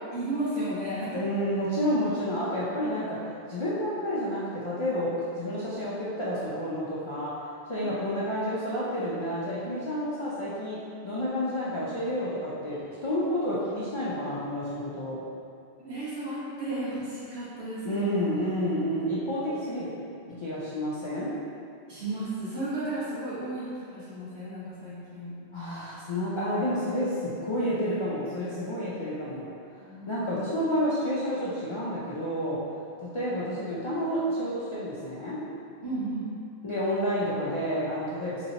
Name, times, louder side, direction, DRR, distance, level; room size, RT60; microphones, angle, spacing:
voice 1, 0.1-1.3 7.8-7.9 11.1-11.2 13.1-13.2 15.8-18.0 20.3-20.4 21.9-25.3 29.8-30.2 35.8-36.2, right 1 dB, 85° right, -10 dB, 1.5 m, -34 dB
voice 2, 1.1-7.3 7.7-10.8 11.0-15.2 17.8-19.9 20.4-21.3 25.5-29.5 30.1-32.6 33.1-35.4 36.6-38.5, equal, 40° left, -9 dB, 0.4 m, -30 dB
4.0 x 3.0 x 2.8 m, 2.5 s
omnidirectional pair, 1.1 m